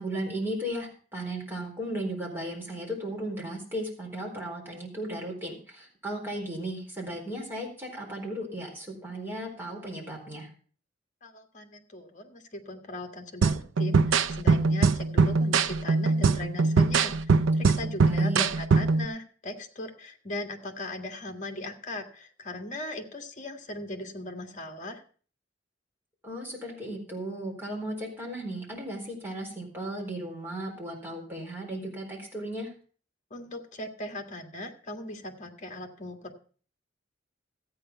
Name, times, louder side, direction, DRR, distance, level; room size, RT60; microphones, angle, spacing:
voice 1, 0.0-10.5 18.0-18.5 26.2-32.7, right 1 dB, 10° right, -2 dB, 4.2 m, -35 dB
voice 2, 11.2-25.0 33.3-36.4, left 1 dB, 40° left, 4 dB, 1.8 m, -39 dB
sound 1, 13.4-19.1, right 4 dB, 85° right, 0.5 m, -22 dB
13.5 x 9.0 x 5.6 m, 0.42 s
head